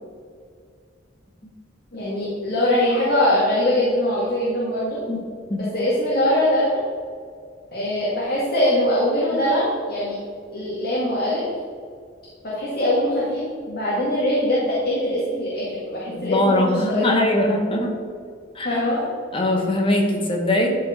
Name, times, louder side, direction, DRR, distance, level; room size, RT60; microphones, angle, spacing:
voice 1, 1.9-5.0 5.7-6.8 7.7-10.2 10.5-11.4 12.4-13.4 13.7-17.1 18.6-19.0, left 1 dB, 55° left, -7 dB, 2.0 m, -22 dB
voice 2, 16.1-18.0 18.5-18.9 19.3-20.8, left 1 dB, 30° left, 1 dB, 1.3 m, -21 dB
11.0 x 4.5 x 4.3 m, 2.2 s
head